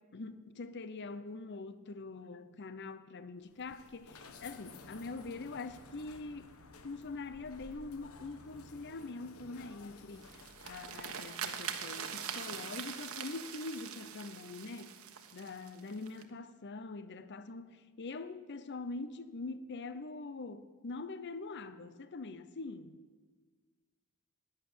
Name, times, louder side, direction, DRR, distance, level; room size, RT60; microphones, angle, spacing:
voice 1, 0.1-6.5 6.8-14.9 15.3-23.0, left 3 dB, 55° left, 0.7 m, -44 dB
sound 1, 3.4-11.3, left 3 dB, 85° left, 1.2 m, -54 dB
sound 2, 10.1-16.2, right 7 dB, 80° right, 1.3 m, -43 dB
11.5 x 10.5 x 8.8 m
head